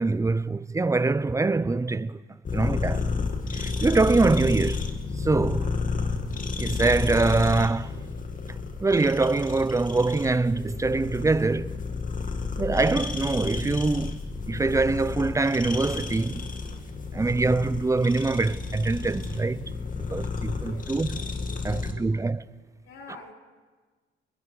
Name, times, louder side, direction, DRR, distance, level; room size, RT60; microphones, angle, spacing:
voice 1, 0.0-2.2 2.5-3.1 3.5-4.9 5.2-5.7 6.6-7.9 8.8-11.8 12.6-14.2 14.5-16.5 17.1-19.7 20.1-21.1 21.6-22.4, right 3 dB, 15° right, 0.6 m, -24 dB
sound 1, 2.4-21.9, left 4 dB, 40° left, 2.2 m, -31 dB
voice 2, 20.5-21.0 21.5-22.1 22.8-23.3, left 4 dB, 80° left, 3.7 m, -47 dB
28.5 x 21.0 x 4.9 m
cardioid pair, 90°, 20 cm